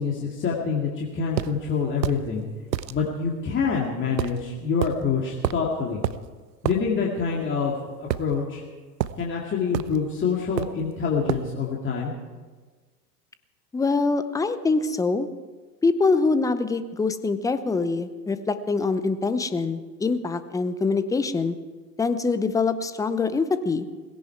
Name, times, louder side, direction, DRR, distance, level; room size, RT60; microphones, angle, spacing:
voice 1, 0.0-2.5 2.9-6.0 6.6-7.7 8.2-8.6 9.2-12.1, left 5 dB, 25° left, -3 dB, 2.3 m, -26 dB
sound 1, 1.4-1.5 2.0-2.2 2.7-2.9 4.2-4.4 4.8-5.0 5.4-5.7 6.0-6.2 6.6-6.8 8.1-8.6 9.0-9.2 9.7-10.0 10.6-10.8 11.3-11.5, right 11 dB, 80° right, 0.8 m, -28 dB
voice 2, 13.7-15.3 15.8-21.6 22.0-23.9, left 4 dB, 5° left, 12 dB, 0.7 m, -24 dB
18.0 x 16.5 x 4.6 m, 1.4 s
figure-of-eight pair, 90°, 50 cm